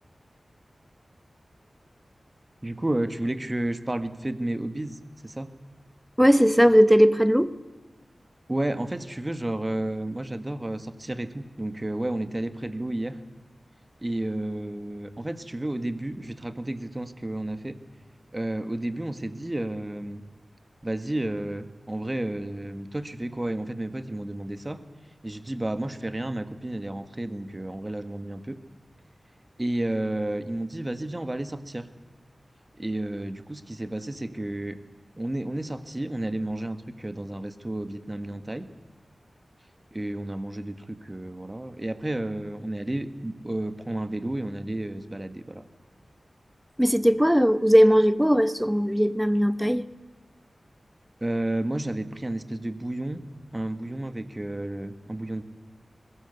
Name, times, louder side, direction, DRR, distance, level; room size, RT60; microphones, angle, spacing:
voice 1, 2.6-5.6 8.5-13.2 14.0-17.7 18.3-20.2 20.8-24.8 25.2-28.6 29.6-31.9 32.8-34.8 35.2-38.7 39.9-45.6 51.2-53.2 53.5-55.4, right 1 dB, 25° right, 1.7 m, -31 dB
voice 2, 6.2-7.5 46.8-49.9, equal, ahead, 1.0 m, -19 dB
22.0 x 19.5 x 8.2 m
wide cardioid pair, 75°, 0 cm